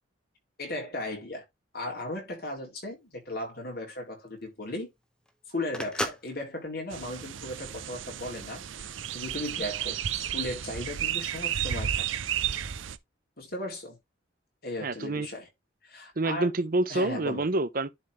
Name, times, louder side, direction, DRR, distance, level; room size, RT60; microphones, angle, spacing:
voice 1, 0.6-1.4 1.7-4.9 5.5-8.6 9.1-12.1 13.4-14.0 14.6-15.5 15.8-16.5 16.9-17.4, left 1 dB, 50° left, 3.8 m, -36 dB
Telephone, 2.8-8.1, left 1 dB, 5° left, 1.0 m, -38 dB
sound 1, 6.9-13.0, right 10 dB, 80° right, 0.6 m, -33 dB
voice 2, 14.8-15.3 16.2-17.9, right 2 dB, 45° right, 0.7 m, -27 dB
11.0 x 4.1 x 3.2 m
head